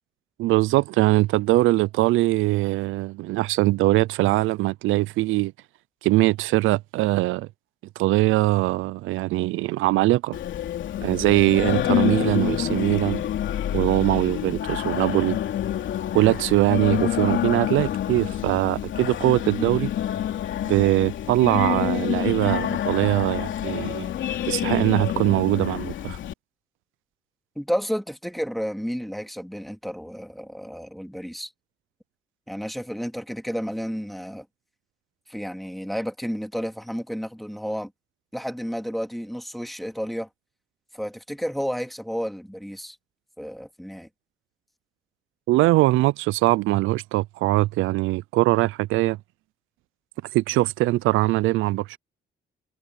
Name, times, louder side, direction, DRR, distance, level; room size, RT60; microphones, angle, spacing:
voice 1, 0.4-5.5 6.0-7.5 8.0-10.4 11.0-13.2 13.7-15.4 16.1-19.9 20.6-24.1 24.4-26.2 45.5-49.2 50.3-52.0, right 18 dB, 85° right, 0.4 m, -22 dB
Singing, 10.3-26.3, left 11 dB, 70° left, 2.9 m, -27 dB
voice 2, 27.6-31.5 32.5-34.5 35.3-37.9 38.3-40.3 40.9-43.0 43.4-44.1, equal, ahead, 2.4 m, -31 dB
cardioid pair, 90°, 20 cm